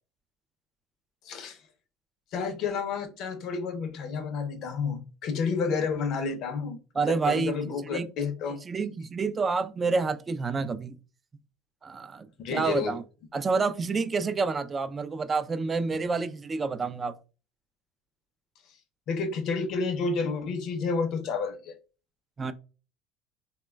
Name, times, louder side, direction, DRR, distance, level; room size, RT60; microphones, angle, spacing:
voice 1, 1.2-1.6 2.3-6.8 7.0-8.6 12.4-13.0 15.9-16.0 19.1-21.8, left 5 dB, 60° left, 0.5 m, -30 dB
voice 2, 7.0-8.1 8.7-11.0 11.8-13.0 13.3-17.2 22.4-22.5, right 4 dB, 25° right, 0.3 m, -28 dB
3.0 x 2.1 x 2.2 m
supercardioid pair, 100°, 0 cm